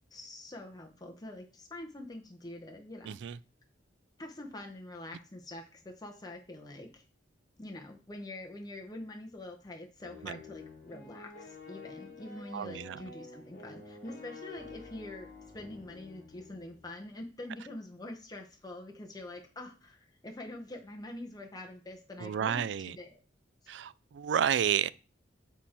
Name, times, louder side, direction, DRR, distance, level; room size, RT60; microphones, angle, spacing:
voice 1, 0.1-3.2 4.2-7.0 7.6-15.3 15.5-23.2, left 1 dB, 20° left, 0.8 m, -45 dB
voice 2, 3.0-3.4 10.2-10.4 12.5-13.0 22.2-23.0 23.7-24.9, right 9 dB, 70° right, 0.3 m, -31 dB
sound 1, 10.0-16.9, left 4 dB, 50° left, 1.5 m, -49 dB
7.0 x 4.3 x 4.3 m
head